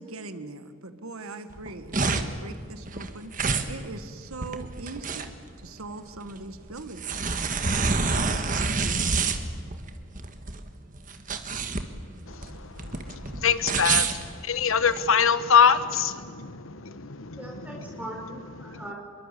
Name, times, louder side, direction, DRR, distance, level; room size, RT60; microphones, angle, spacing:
voice 1, 0.0-3.3 3.7-7.5 8.6-9.0, right 3 dB, 85° right, 10 dB, 1.5 m, -41 dB
sound 1, 1.5-15.0, right 4 dB, 40° right, 1.5 m, -28 dB
voice 2, 12.3-18.0 18.6-18.8, left 7 dB, 75° left, 13 dB, 1.1 m, -25 dB
voice 3, 17.4-18.9, right 1 dB, 5° right, -1 dB, 5.9 m, -40 dB
25.0 x 22.5 x 8.3 m, 2.1 s
head